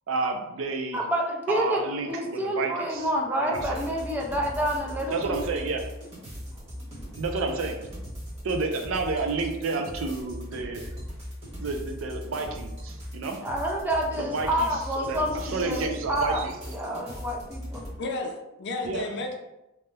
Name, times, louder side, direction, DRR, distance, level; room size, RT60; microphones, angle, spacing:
voice 1, 0.1-1.0 1.5-3.1 3.4-3.8 5.1-5.8 7.2-7.8 8.4-10.9 11.6-13.4 14.2-14.7 15.0-16.5 18.8-19.0, right 3 dB, 70° right, 5 dB, 0.4 m, -30 dB
voice 2, 0.9-1.8 2.1-5.5 13.4-16.4 16.7-17.8, equal, 10° right, -1 dB, 0.4 m, -28 dB
sound 1, 3.5-18.0, equal, 30° right, 1.1 m, -39 dB
voice 3, 18.0-19.4, left 2 dB, 60° left, 3 dB, 0.5 m, -32 dB
2.9 x 2.1 x 3.3 m, 0.93 s
head